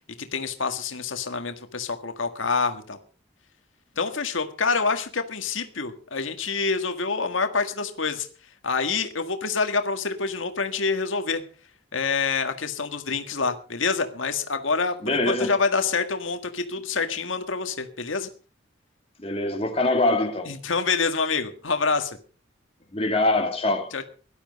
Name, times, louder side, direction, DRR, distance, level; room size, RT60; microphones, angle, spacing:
voice 1, 0.2-3.0 4.0-8.3 8.6-11.4 11.9-18.3 20.5-22.2 23.9-24.0, left 4 dB, 85° left, 1.7 m, -27 dB
voice 2, 15.0-15.6 19.2-20.5 22.9-24.0, left 2 dB, 30° left, 2.3 m, -24 dB
17.5 x 12.0 x 5.3 m
head